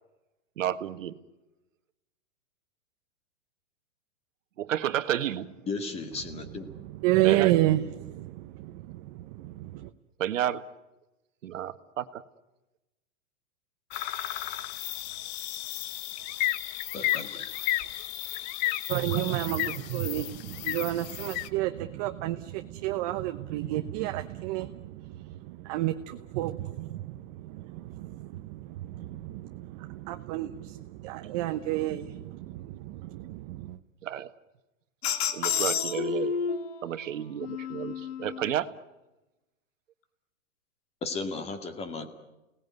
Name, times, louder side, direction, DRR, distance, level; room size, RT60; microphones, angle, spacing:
voice 1, 0.6-1.2 4.6-5.5 7.2-7.5 10.2-10.6 11.4-12.2 31.2-31.3 34.0-34.3 35.3-36.4 36.8-38.7, right 11 dB, 75° right, 11 dB, 1.6 m, -31 dB
voice 2, 5.7-6.7 16.9-17.6 41.0-42.1, left 3 dB, 15° left, 9 dB, 2.1 m, -35 dB
voice 3, 7.0-9.9 18.9-33.8, right 15 dB, 30° right, 8 dB, 0.9 m, -31 dB
sound 1, 13.9-21.5, left 14 dB, 35° left, 0.9 m, -33 dB
sound 2, 35.0-36.8 37.4-38.5, left 7 dB, 50° left, 2.2 m, -30 dB
29.5 x 19.0 x 9.5 m, 1.0 s
hypercardioid pair, 155°, 38 cm